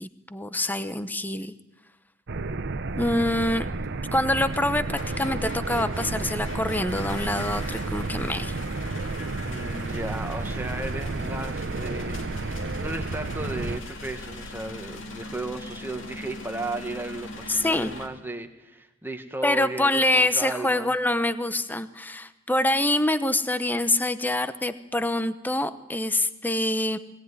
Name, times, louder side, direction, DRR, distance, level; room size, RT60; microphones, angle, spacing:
voice 1, 0.0-1.5 3.0-3.7 4.1-8.5 17.5-17.9 19.4-27.0, left 1 dB, 10° left, 12 dB, 0.9 m, -25 dB
sound 1, 2.3-13.8, right 3 dB, 55° right, 0.8 m, -31 dB
sound 2, 3.8-3.9 4.5-18.1, left 2 dB, 65° left, 3.0 m, -40 dB
voice 2, 9.4-12.2 12.7-20.9, right 2 dB, 10° right, 6 dB, 1.6 m, -35 dB
21.5 x 18.0 x 9.6 m, 1.0 s
head